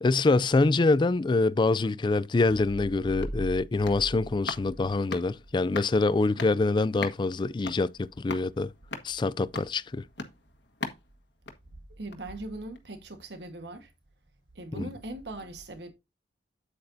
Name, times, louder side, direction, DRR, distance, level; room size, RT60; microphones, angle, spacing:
voice 1, 0.0-8.7 9.0-10.0 14.7-14.9, left 3 dB, 25° left, 0.3 m, -25 dB
sound 1, 2.6-5.6, right 1 dB, 30° right, 0.7 m, -40 dB
sound 2, 3.0-12.4 12.7-12.8, left 3 dB, 80° left, 1.5 m, -42 dB
voice 2, 12.0-13.9 14.5-15.9, right 2 dB, 75° right, 1.4 m, -40 dB
8.7 x 8.5 x 2.7 m
head